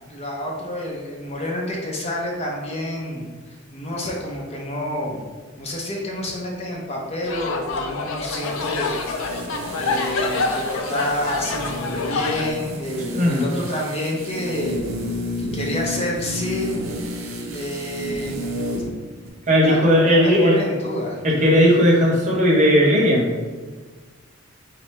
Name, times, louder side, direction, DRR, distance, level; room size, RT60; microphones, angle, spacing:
voice 1, 0.1-5.2 5.6-9.0 9.8-14.9 15.4-16.7 17.5-18.6 19.6-21.2 21.5-21.8, left 1 dB, 30° left, -2 dB, 0.6 m, -28 dB
sound 1, 7.2-12.5, left 3 dB, 70° left, 0.4 m, -27 dB
sound 2, 8.3-19.0 19.2-19.3, equal, 70° right, 0.6 m, -32 dB
voice 2, 13.0-13.4 19.5-20.6 21.2-23.3, equal, 35° right, -4 dB, 0.9 m, -16 dB
4.9 x 2.2 x 4.1 m, 1.4 s
head